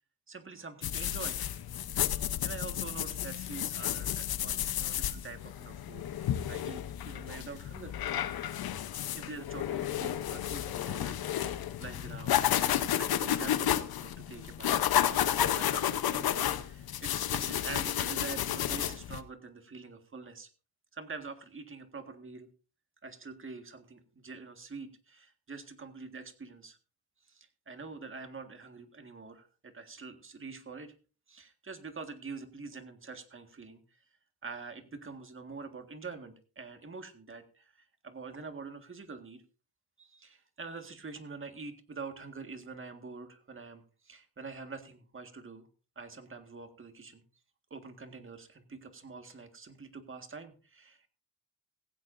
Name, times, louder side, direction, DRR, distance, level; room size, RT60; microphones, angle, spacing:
voice 1, 0.3-1.4 2.4-7.9 9.1-20.5 20.9-22.5 23.0-26.8 27.3-30.9 31.3-34.0 34.4-39.4 40.0-45.7 45.9-47.2 47.7-51.1, right 4 dB, 35° right, 7 dB, 1.8 m, -46 dB
sound 1, 0.8-19.2, left 11 dB, 70° left, 0.9 m, -32 dB
16.5 x 15.5 x 2.6 m, 0.36 s
cardioid pair, 115°, 38 cm